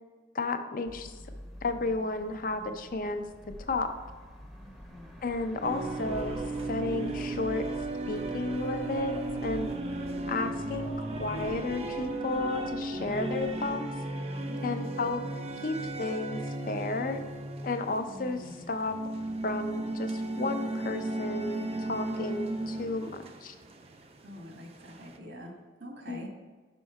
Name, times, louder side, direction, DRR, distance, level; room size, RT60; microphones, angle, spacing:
voice 1, 0.3-1.1 1.6-3.2 3.6-4.0 5.2-6.4 6.7-7.6 8.1-9.1 9.4-9.7 10.3-13.9 14.6-15.2 15.6-16.4 16.7-17.2 17.6-18.9 19.4-23.6 26.1-26.3, left 3 dB, 50° left, 8 dB, 0.5 m, -32 dB
sound 1, 0.8-13.7, equal, ahead, 0.6 m, -47 dB
voice 2, 1.0-1.5 4.6-5.2 14.4-14.8 18.0-18.7 24.2-26.3, equal, 85° right, 2 dB, 1.3 m, -46 dB
sound 2, 5.6-25.2, right 2 dB, 35° right, 0.5 m, -35 dB
5.5 x 5.3 x 4.7 m, 1.4 s
head